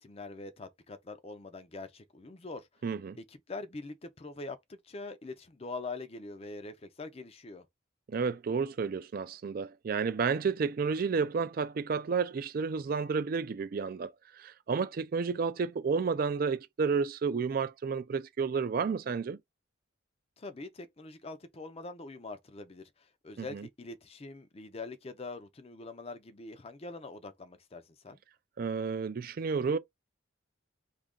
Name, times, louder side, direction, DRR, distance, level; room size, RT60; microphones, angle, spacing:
voice 1, 0.0-2.7 3.2-7.7 20.4-28.2, left 3 dB, 30° left, 0.5 m, -44 dB
voice 2, 2.8-3.2 8.1-19.4 23.4-23.7 28.6-29.8, right 5 dB, 45° right, 0.3 m, -31 dB
2.8 x 2.5 x 3.5 m
head